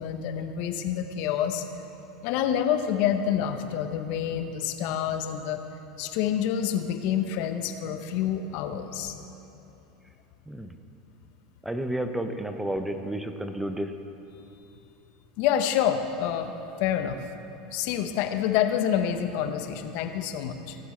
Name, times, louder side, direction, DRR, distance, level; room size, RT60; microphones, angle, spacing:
voice 1, 0.0-1.6 2.2-5.6 6.0-9.2 15.4-16.5 16.8-17.2 17.7-20.8, left 9 dB, 60° left, 7 dB, 0.8 m, -27 dB
voice 2, 11.6-13.9, right 1 dB, 5° right, 7 dB, 0.7 m, -31 dB
16.5 x 7.4 x 3.2 m, 2.9 s
supercardioid pair, 110°, 3 cm